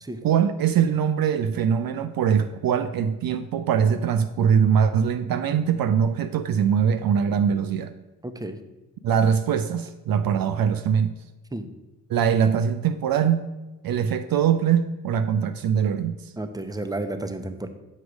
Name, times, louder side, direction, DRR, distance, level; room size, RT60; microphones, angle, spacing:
voice 1, 0.2-7.9 9.0-11.1 12.1-13.5 13.8-16.2, right 7 dB, 60° right, 10 dB, 0.5 m, -22 dB
voice 2, 8.2-8.6 11.5-11.7 16.4-17.7, right 2 dB, 10° right, 8 dB, 0.9 m, -31 dB
6.5 x 4.6 x 6.2 m, 1.1 s
supercardioid pair, 45°, 40 cm